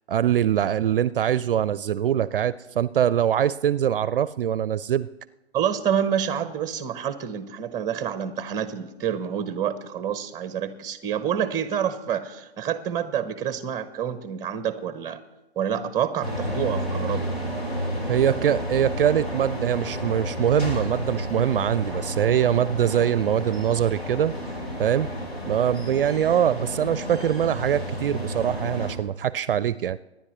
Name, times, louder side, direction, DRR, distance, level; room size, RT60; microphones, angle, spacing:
voice 1, 0.1-5.1 18.1-24.4 24.8-25.1 25.5-30.0, right 10 dB, 60° right, 18 dB, 0.4 m, -23 dB
voice 2, 5.5-15.2 15.6-17.3, right 8 dB, 10° right, 13 dB, 0.7 m, -28 dB
sound 1, 16.2-28.9, equal, 75° left, 4.4 m, -31 dB
24.0 x 10.0 x 3.0 m, 1.0 s
figure-of-eight pair, 125°, 32 cm